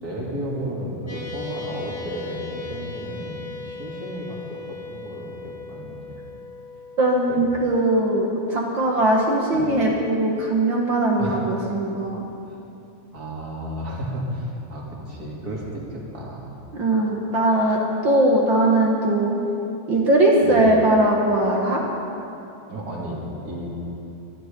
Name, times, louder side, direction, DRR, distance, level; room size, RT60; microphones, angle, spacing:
voice 1, 0.0-6.2 7.3-7.4 9.5-9.7 11.2-11.7 13.1-16.4 20.4-20.6 22.7-23.2 23.4-23.7, right 1 dB, 30° right, -3 dB, 2.7 m, -33 dB
sound 1, 1.1-9.8, left 4 dB, 20° left, 2.4 m, -39 dB
voice 2, 7.0-12.2 16.7-19.4 19.9-21.8, right 1 dB, 45° right, -1 dB, 1.8 m, -20 dB
23.5 x 11.5 x 5.3 m, 2.8 s
omnidirectional pair, 3.7 m